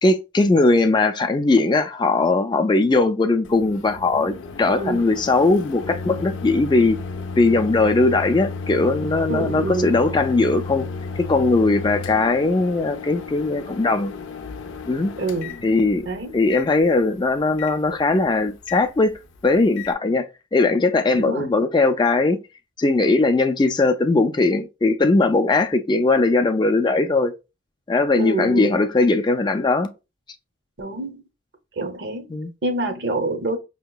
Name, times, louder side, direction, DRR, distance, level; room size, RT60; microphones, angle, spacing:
voice 1, 0.0-7.0 7.4-10.9 11.2-14.1 14.9-15.1 15.6-16.1 16.3-20.3 20.5-22.4 22.8-27.3 27.9-29.9 32.3-32.5, left 3 dB, 25° left, 0.3 m, -19 dB
Microwave oven, 3.4-19.9, left 4 dB, 85° left, 0.5 m, -34 dB
voice 2, 4.7-5.1 9.3-10.0 15.2-15.5 16.0-16.4 21.1-21.5 28.2-28.8 30.8-31.2 31.8-32.2 32.6-33.6, right 2 dB, 60° right, 0.7 m, -26 dB
5.3 x 2.8 x 2.2 m
head